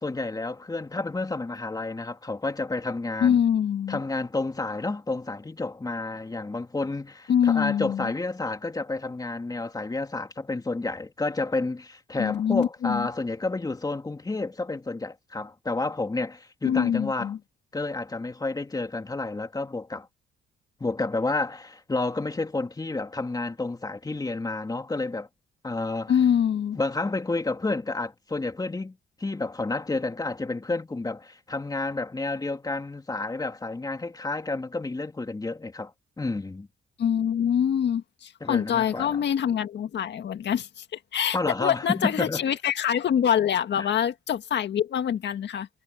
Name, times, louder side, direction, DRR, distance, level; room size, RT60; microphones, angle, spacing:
voice 1, 0.0-3.4 3.9-17.3 17.7-20.1 20.8-25.3 25.6-26.1 26.7-35.9 36.2-36.7 38.4-39.2 41.3-42.4 43.8-43.9, left 3 dB, 20° left, 2.7 m, -30 dB
voice 2, 3.2-4.0 7.3-8.1 12.2-13.1 16.6-17.4 26.1-26.8 37.0-45.7, left 9 dB, 60° left, 1.8 m, -25 dB
cardioid pair, 90°, 20 cm